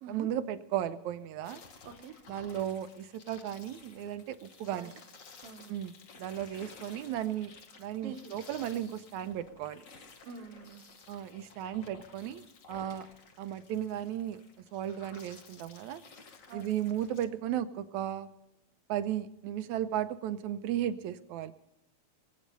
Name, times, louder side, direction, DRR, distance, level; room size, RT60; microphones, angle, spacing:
voice 1, 0.1-1.6 2.3-4.9 5.7-5.9 6.2-7.5 7.8-9.8 11.1-13.1 13.4-14.4 14.7-16.0 16.5-18.3 18.9-21.5, right 11 dB, 80° right, 11 dB, 2.2 m, -35 dB
sound 1, 1.4-17.2, left 4 dB, 80° left, 0.7 m, -54 dB
voice 2, 1.8-2.2 4.7-4.9 5.4-5.8 8.0-8.2 10.2-10.8 16.5-16.9, right 6 dB, 60° right, 6 dB, 1.9 m, -46 dB
22.0 x 8.7 x 5.4 m, 0.88 s
omnidirectional pair, 3.3 m